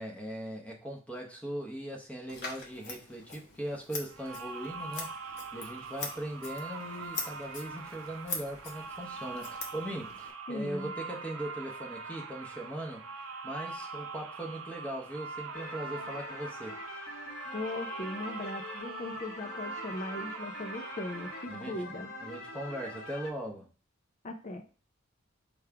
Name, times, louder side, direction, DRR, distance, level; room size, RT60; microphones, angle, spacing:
voice 1, 0.0-13.1 13.4-16.8 21.5-21.8 22.2-23.7, right 1 dB, 5° left, 0.8 m, -40 dB
Scissors, 2.3-10.3, left 3 dB, 50° left, 1.1 m, -43 dB
sound 1, 4.1-21.4, right 4 dB, 70° right, 0.5 m, -43 dB
voice 2, 10.5-10.9 17.5-22.1 24.2-24.6, left 2 dB, 35° left, 0.5 m, -38 dB
sound 2, 15.5-23.3, left 2 dB, 85° left, 1.5 m, -44 dB
3.5 x 3.1 x 4.7 m
head